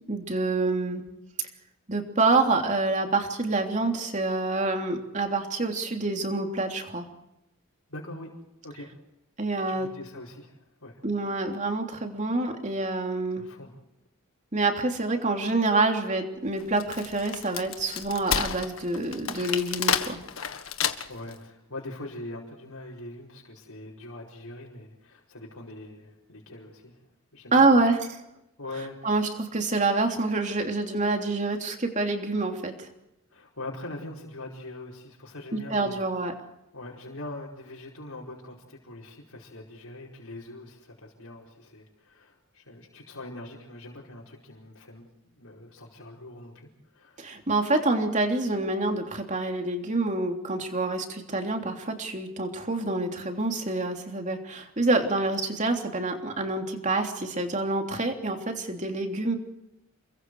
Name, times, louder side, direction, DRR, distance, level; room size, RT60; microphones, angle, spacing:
voice 1, 0.1-1.0 1.9-7.0 9.4-9.9 11.0-13.4 14.5-20.2 27.5-28.2 29.0-32.9 35.5-36.3 47.2-59.4, right 2 dB, 35° right, 3 dB, 3.2 m, -27 dB
voice 2, 7.9-8.3 8.6-8.9 9.7-10.5 10.8-11.0 13.4-13.7 21.1-27.0 27.3-27.8 28.6-29.1 33.3-36.0 36.7-45.1 45.4-47.2, left 2 dB, 90° left, -4 dB, 5.1 m, -42 dB
Wood, 16.6-21.3, left 8 dB, 75° left, 1.7 m, -30 dB
29.5 x 22.5 x 4.8 m, 0.85 s
head